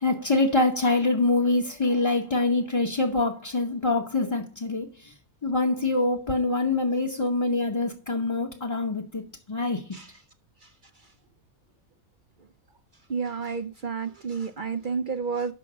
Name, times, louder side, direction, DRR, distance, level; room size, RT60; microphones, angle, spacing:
voice 1, 0.0-4.9 5.4-9.2 9.5-9.8, left 2 dB, 25° left, 0.8 m, -25 dB
voice 2, 13.1-15.5, right 5 dB, 60° right, 0.5 m, -30 dB
6.4 x 5.7 x 7.3 m
omnidirectional pair, 1.4 m